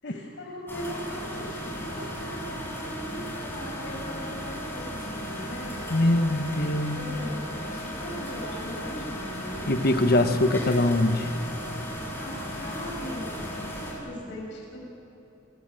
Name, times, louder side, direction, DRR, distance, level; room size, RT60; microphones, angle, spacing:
voice 1, 0.0-6.1 7.0-10.3 12.2-13.4 13.8-14.9, equal, 70° left, -1 dB, 7.6 m, -39 dB
sound 1, 0.7-13.9, equal, 10° left, 6.4 m, -35 dB
voice 2, 5.9-7.0 9.7-11.3, left 1 dB, 55° left, 8 dB, 1.3 m, -23 dB
30.0 x 19.0 x 7.8 m, 2.9 s
head